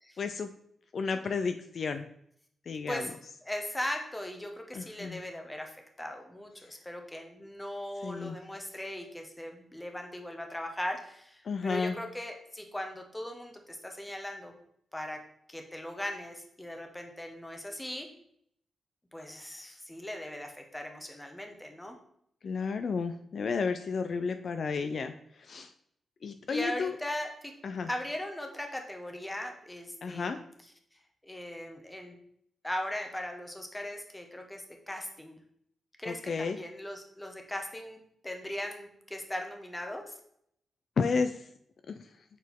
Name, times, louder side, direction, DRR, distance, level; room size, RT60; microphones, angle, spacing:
voice 1, 0.2-0.5 0.9-2.1 2.7-3.1 4.7-5.2 6.7-6.8 8.0-8.4 11.4-12.0 22.4-25.7 26.2-27.0 27.6-27.9 30.0-30.4 36.1-36.6 41.0-41.5 41.9-42.1, left 5 dB, 55° left, 8 dB, 0.3 m, -32 dB
voice 2, 3.5-5.7 6.0-14.5 14.9-15.2 15.5-18.1 19.1-22.0 26.5-27.5 27.9-30.4 31.2-32.2 32.6-35.4 36.0-40.2, left 1 dB, 10° left, 3 dB, 1.0 m, -39 dB
6.1 x 4.3 x 3.5 m, 0.70 s
cardioid pair, 105°, 0 cm